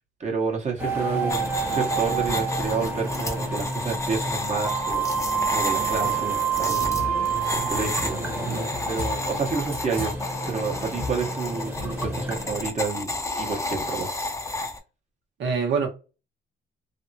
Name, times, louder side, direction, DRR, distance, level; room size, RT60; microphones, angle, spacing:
voice 1, 0.2-7.2 7.5-8.2 8.9-10.1 10.5-14.1, right 5 dB, 35° right, 1.1 m, -30 dB
sound 1, 0.8-12.7, right 5 dB, 10° right, 1.1 m, -28 dB
sound 2, 1.3-14.8, left 2 dB, 15° left, 0.7 m, -32 dB
voice 2, 7.3-7.7 8.4-8.7 15.4-15.9, right 5 dB, 65° right, 1.0 m, -27 dB
3.4 x 2.0 x 2.8 m
cardioid pair, 90°, 20 cm